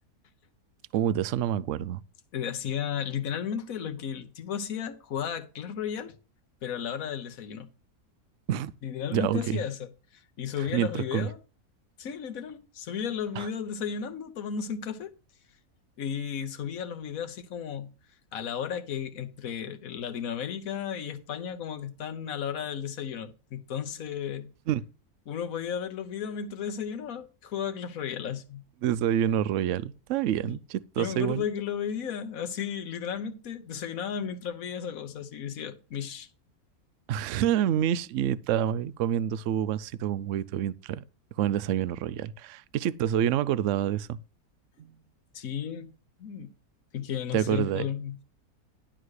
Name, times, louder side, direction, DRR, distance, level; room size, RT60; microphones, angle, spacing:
voice 1, 0.9-2.0 8.5-8.7 9.1-9.6 10.7-11.3 13.4-13.5 24.7-24.8 28.8-31.4 37.1-41.0 41.4-44.2 44.8-44.9 47.3-47.9, right 10 dB, 65° right, 0.8 m, -27 dB
voice 2, 2.3-6.2 6.6-7.7 8.8-11.4 12.0-15.1 16.0-17.9 18.3-24.5 25.3-28.6 30.4-30.6 31.0-36.3 45.3-45.9 46.2-46.5 46.9-48.2, left 8 dB, 65° left, 1.4 m, -34 dB
11.0 x 3.8 x 6.5 m
omnidirectional pair, 1.6 m